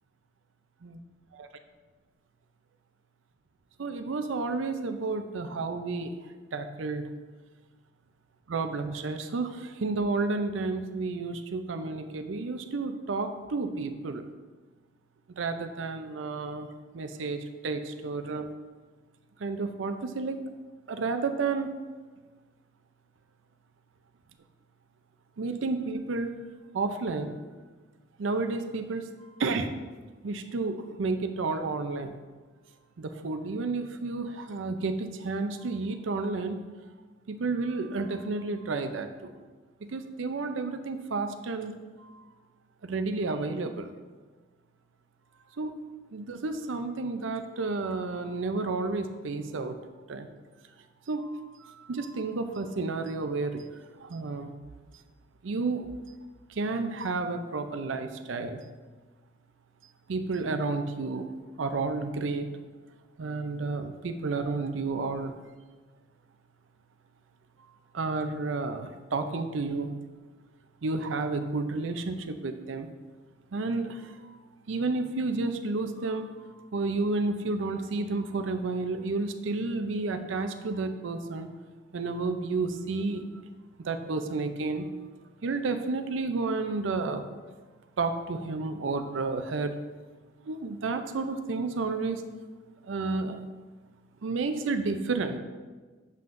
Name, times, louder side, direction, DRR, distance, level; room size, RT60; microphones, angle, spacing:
voice 1, 3.8-6.1 6.5-7.0 8.5-14.2 15.4-16.7 16.9-18.5 19.4-20.4 20.9-21.7 25.4-26.3 26.7-27.3 28.2-29.1 29.4-29.7 30.2-32.2 33.0-36.6 37.3-39.3 39.9-41.7 42.0-42.2 42.8-43.9 45.6-45.7 46.1-49.8 50.1-50.3 51.1-53.6 54.0-54.5 55.4-55.9 56.5-58.6 60.1-61.3 61.6-62.5 63.2-65.3 67.9-69.9 70.8-72.9 73.5-74.3 74.7-76.3 76.7-81.5 81.9-83.3 83.8-84.9 85.4-87.2 88.0-89.7 90.5-92.2 92.9-93.4 94.2-95.4, right 3 dB, 80° right, 8 dB, 0.5 m, -31 dB
7.5 x 5.6 x 2.6 m, 1.3 s
head